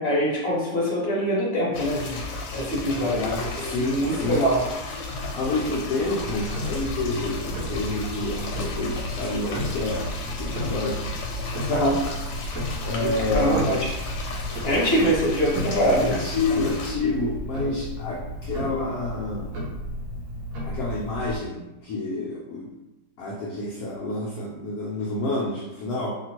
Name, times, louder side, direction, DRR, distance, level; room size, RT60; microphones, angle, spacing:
voice 1, 0.0-2.2 2.5-4.7 11.7-12.0 13.0-13.9 14.6-16.2, equal, 45° left, -5 dB, 0.9 m, -24 dB
sound 1, 1.7-16.9, left 3 dB, 90° left, 1.3 m, -35 dB
voice 2, 2.9-4.4 5.1-11.0 12.8-13.9 15.9-19.5 20.6-22.7 23.2-26.1, left 2 dB, 75° left, -4 dB, 0.9 m, -29 dB
Tick-tock, 6.2-21.4, equal, 60° right, 0.9 m, -33 dB
2.8 x 2.7 x 2.9 m, 0.98 s
omnidirectional pair, 2.0 m